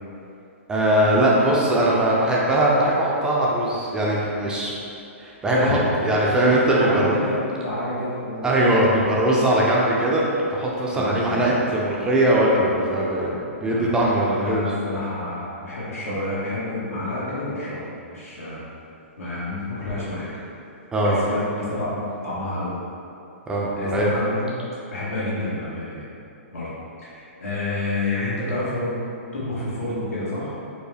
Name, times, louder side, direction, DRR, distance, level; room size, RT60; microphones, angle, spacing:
voice 1, 0.7-4.7 5.2-5.8 6.0-7.1 8.4-10.2 10.5-14.6 20.9-21.2 23.5-24.1, right 1 dB, 10° right, -5 dB, 0.4 m, -20 dB
voice 2, 5.4-5.9 6.4-6.5 6.8-8.6 10.9-11.4 13.6-13.9 14.4-18.6 19.2-20.3 21.0-22.7 23.7-24.5 24.9-26.0 26.5-26.7 27.0-29.0 29.3-30.5, left 2 dB, 85° left, -8 dB, 1.4 m, -29 dB
4.5 x 2.2 x 3.3 m, 2.7 s
hypercardioid pair, 140°, 7 cm